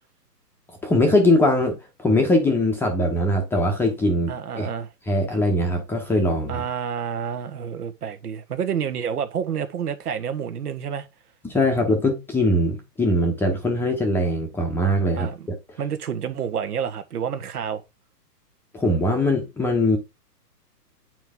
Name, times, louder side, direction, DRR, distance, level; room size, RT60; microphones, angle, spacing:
voice 1, 0.8-4.7 5.1-6.6 11.4-15.3 18.7-20.0, left 1 dB, 5° left, 0.8 m, -21 dB
voice 2, 4.3-4.9 6.5-11.1 15.2-15.5 15.8-17.8, right 8 dB, 65° right, 1.4 m, -29 dB
9.0 x 4.7 x 3.7 m
hypercardioid pair, 140°, 49 cm